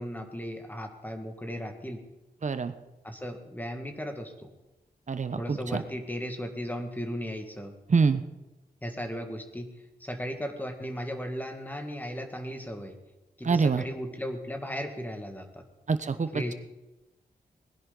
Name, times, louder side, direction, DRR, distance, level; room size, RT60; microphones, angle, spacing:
voice 1, 0.0-2.0 3.0-4.5 5.4-7.7 8.8-9.7 10.0-13.0 13.4-15.6 16.3-16.5, equal, 10° left, 5 dB, 1.8 m, -36 dB
voice 2, 2.4-2.7 5.1-5.8 7.9-8.2 13.4-13.8 15.9-16.3, right 5 dB, 50° right, 11 dB, 1.0 m, -25 dB
20.0 x 11.0 x 4.0 m, 1.0 s
wide cardioid pair, 125°, 17 cm